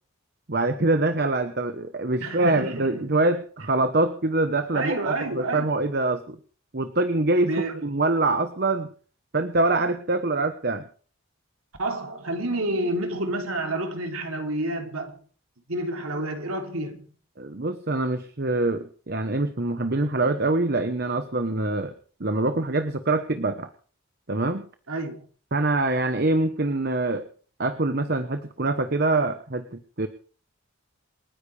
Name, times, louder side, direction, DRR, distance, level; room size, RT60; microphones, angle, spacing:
voice 1, 0.5-6.4 6.7-8.9 9.3-10.8 17.4-21.9 22.2-23.7 24.3-24.7 25.5-27.3 27.6-30.1, right 2 dB, 50° right, 1.1 m, -24 dB
voice 2, 2.2-3.1 4.7-5.7 7.4-7.8 11.8-15.2 15.7-17.1 24.9-25.2, right 2 dB, 85° right, 3.1 m, -29 dB
28.0 x 10.5 x 3.4 m
head